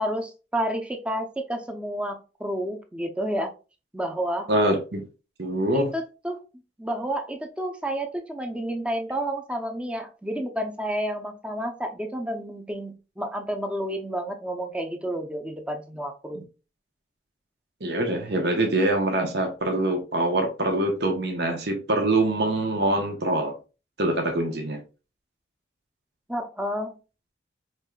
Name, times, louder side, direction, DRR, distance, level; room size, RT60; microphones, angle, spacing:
voice 1, 0.0-3.5 3.9-4.5 5.7-6.4 6.8-16.4 26.3-26.9, right 1 dB, 5° right, 0.6 m, -30 dB
voice 2, 4.5-5.0 5.4-5.9 16.3-16.4 17.8-23.5 24.0-24.8, right 1 dB, 65° right, 0.9 m, -24 dB
5.3 x 3.2 x 2.3 m
head